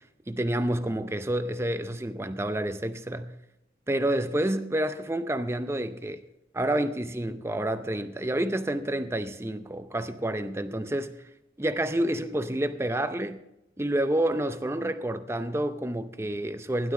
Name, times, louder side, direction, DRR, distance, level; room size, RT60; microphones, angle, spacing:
voice 1, 0.3-3.3 3.9-6.2 6.5-11.1 11.6-13.4 13.8-16.9, right 1 dB, 15° right, 0.5 m, -29 dB
16.0 x 11.5 x 3.7 m
head